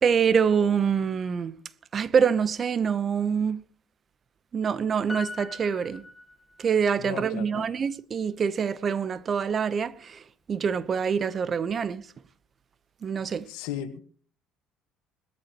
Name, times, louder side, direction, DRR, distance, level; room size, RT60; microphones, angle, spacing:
voice 1, 0.0-1.6 1.9-3.6 4.5-6.0 6.6-10.2 10.5-12.0 13.0-13.5, right 6 dB, 40° right, 0.9 m, -25 dB
Piano, 5.1-6.9 7.2-7.3, left 3 dB, ahead, 1.3 m, -40 dB
voice 2, 7.0-7.7 13.5-14.0, left 10 dB, 90° left, 1.8 m, -36 dB
20.5 x 13.5 x 3.0 m
supercardioid pair, 100°, 0 cm